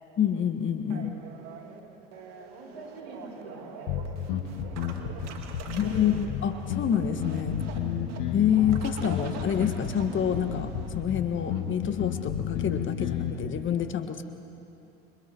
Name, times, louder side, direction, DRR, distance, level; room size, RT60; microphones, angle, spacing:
voice 1, 0.2-1.2 5.8-7.6 8.3-10.7 10.9-14.2, left 8 dB, 40° left, 8 dB, 1.7 m, -27 dB
sound 1, 0.9-11.7, right 6 dB, 55° right, 2.4 m, -44 dB
voice 2, 2.5-5.4 5.6-6.2, right 2 dB, 85° right, -1 dB, 6.2 m, -47 dB
sound 2, 3.9-13.5, left 9 dB, 65° left, 2.3 m, -32 dB
28.5 x 24.5 x 4.7 m, 2.8 s
hypercardioid pair, 80°, 31 cm